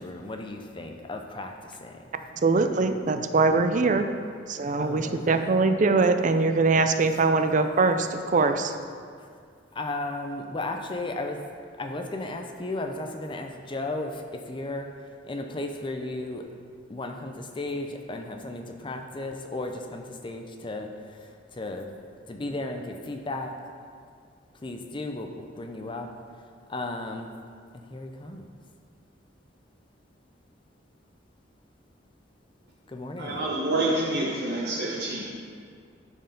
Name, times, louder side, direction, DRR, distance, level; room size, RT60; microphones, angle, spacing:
voice 1, 0.0-2.0 4.8-5.6 9.7-11.4 11.8-14.9 15.2-16.5 16.9-21.9 22.3-23.5 24.6-26.1 26.7-27.3 27.7-28.5 32.9-33.5, left 2 dB, 25° left, 4 dB, 0.5 m, -35 dB
voice 2, 2.4-4.1 4.5-8.7, right 3 dB, 45° right, 8 dB, 0.5 m, -22 dB
voice 3, 33.2-35.3, right 2 dB, 60° right, -5 dB, 1.1 m, -27 dB
11.0 x 4.6 x 5.2 m, 2.2 s
head